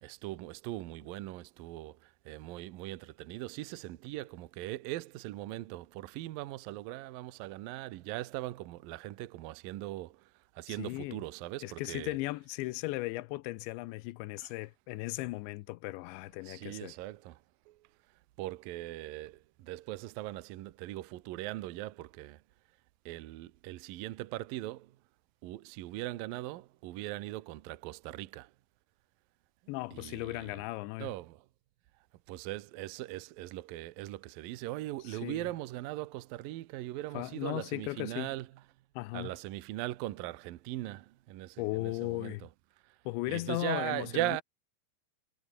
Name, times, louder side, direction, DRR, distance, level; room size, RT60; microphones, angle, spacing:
voice 1, 0.0-10.2 10.6-12.2 14.4-14.5 16.4-17.4 17.7-17.8 18.4-22.4 23.1-24.9 25.4-28.5 29.9-30.6 31.0-31.4 32.3-38.5 39.1-42.5 43.3-44.4, right 17 dB, 85° right, 2.0 m, -40 dB
voice 2, 10.7-11.2 11.6-17.0 29.7-31.1 35.0-35.5 37.1-38.3 39.0-39.3 41.6-42.5 43.1-44.4, left 20 dB, 80° left, 2.8 m, -37 dB
omnidirectional pair, 5.6 m